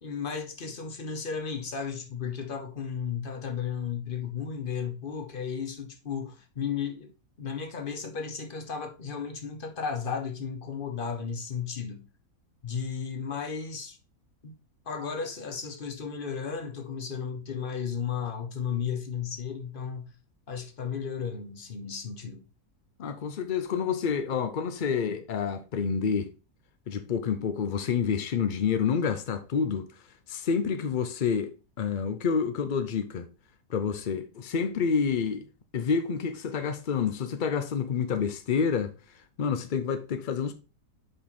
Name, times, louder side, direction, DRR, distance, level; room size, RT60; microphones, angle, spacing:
voice 1, 0.0-7.1 7.4-12.0 12.6-14.0 14.4-14.5 14.9-20.1 20.5-22.4, left 6 dB, 40° left, 1.0 m, -34 dB
voice 2, 23.0-26.3 26.9-29.9 30.3-31.5 31.8-33.3 33.7-35.5 35.7-38.9 39.4-40.5, left 6 dB, 75° left, 0.4 m, -28 dB
5.5 x 5.3 x 4.2 m
omnidirectional pair, 1.7 m